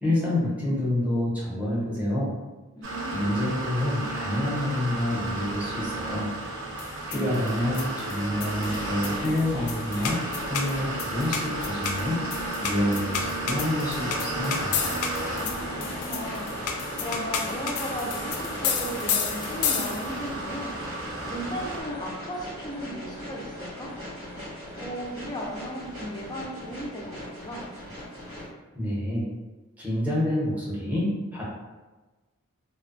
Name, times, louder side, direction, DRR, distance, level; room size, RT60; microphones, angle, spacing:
voice 1, 0.0-2.3 3.1-6.3 7.1-10.2 10.5-14.9 28.7-29.3 29.8-31.4, left 1 dB, 5° right, -8 dB, 0.8 m, -28 dB
voice 2, 2.8-3.4 15.3-20.7 21.3-23.9 24.7-27.6, equal, 20° left, -2 dB, 0.4 m, -36 dB
sound 1, 2.8-21.8, right 2 dB, 55° right, 0.6 m, -34 dB
sound 2, 6.8-20.3, left 6 dB, 85° left, 0.4 m, -32 dB
sound 3, 8.7-28.5, left 1 dB, 80° right, 1.4 m, -40 dB
2.6 x 2.2 x 2.5 m, 1.2 s
head